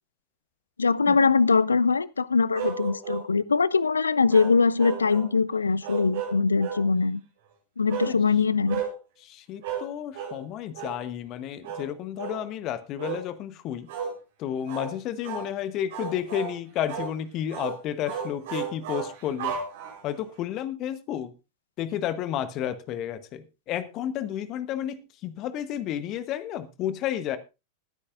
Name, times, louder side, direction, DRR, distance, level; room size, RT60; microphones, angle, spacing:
voice 1, 0.8-7.2 7.8-8.8, left 4 dB, 75° left, 0.5 m, -22 dB
sound 1, 2.5-3.3 4.3-5.3 5.8-6.9 7.9-8.2 8.7-8.9 9.6-9.9 10.1-10.4 10.7-11.0 11.6-11.9 12.2-12.4 13.0-13.2 13.9-14.1 14.7-14.9 15.2-15.5 15.9-16.5 16.9-17.1 17.5-17.8 18.1-20.2, right 7 dB, 55° right, 3.9 m, -33 dB
voice 2, 9.2-13.9 14.4-19.6 20.0-21.3 21.8-27.4, left 10 dB, 35° left, 1.1 m, -32 dB
20.5 x 9.9 x 2.5 m
figure-of-eight pair, 90°, 0 cm